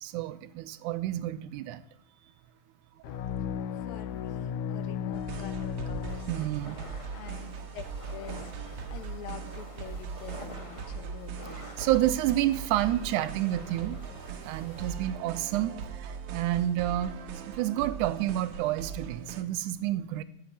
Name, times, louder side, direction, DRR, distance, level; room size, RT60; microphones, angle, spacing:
voice 1, 0.0-1.8 3.1-3.2 6.3-6.8 11.8-14.0 14.4-17.2 17.5-20.2, right 13 dB, 85° right, 13 dB, 2.1 m, -29 dB
sound 1, 3.0-6.9, left 8 dB, 90° left, 2.2 m, -35 dB
voice 2, 3.7-6.3 7.1-7.8 8.1-8.5 8.9-11.8, left 9 dB, 60° left, 9 dB, 1.5 m, -46 dB
sound 2, 5.1-19.4, right 6 dB, 65° right, 1.7 m, -40 dB
sound 3, 6.1-14.9, left 1 dB, 45° left, 0.4 m, -48 dB
12.5 x 5.9 x 9.0 m, 0.72 s
omnidirectional pair, 3.6 m